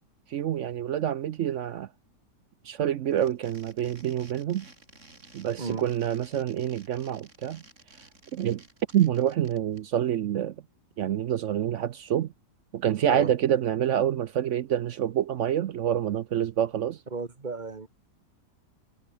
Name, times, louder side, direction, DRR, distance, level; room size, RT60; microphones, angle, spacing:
voice 1, 0.3-1.9 2.6-4.7 5.3-7.6 8.3-8.6 8.9-10.5 11.0-12.3 12.7-17.0, right 10 dB, 65° right, 0.7 m, -27 dB
sound 1, 3.1-9.8, right 2 dB, 45° right, 4.9 m, -53 dB
voice 2, 17.1-17.9, right 4 dB, 30° right, 2.0 m, -34 dB
omnidirectional pair, 1.8 m